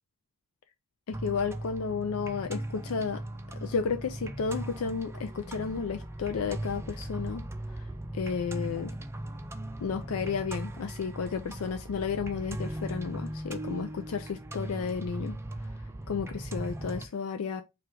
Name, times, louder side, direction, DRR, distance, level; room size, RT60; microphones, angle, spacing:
voice 1, 1.1-3.2 3.6-7.4 8.1-8.9 9.8-15.4 16.1-17.6, left 5 dB, 75° left, 0.4 m, -32 dB
sound 1, 1.1-17.1, right 1 dB, 10° right, 0.4 m, -38 dB
4.9 x 2.4 x 4.5 m
head